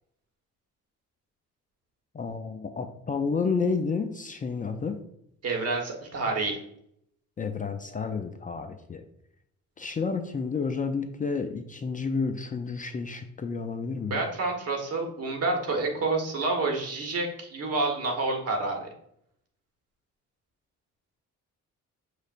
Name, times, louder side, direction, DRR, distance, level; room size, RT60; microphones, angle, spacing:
voice 1, 2.1-5.0 7.4-9.0 9.8-14.2, left 5 dB, 25° left, 7 dB, 0.4 m, -30 dB
voice 2, 5.4-6.6 14.1-18.9, right 3 dB, 55° right, 1 dB, 1.4 m, -28 dB
6.4 x 3.2 x 2.5 m, 0.74 s
cardioid pair, 90°, 30 cm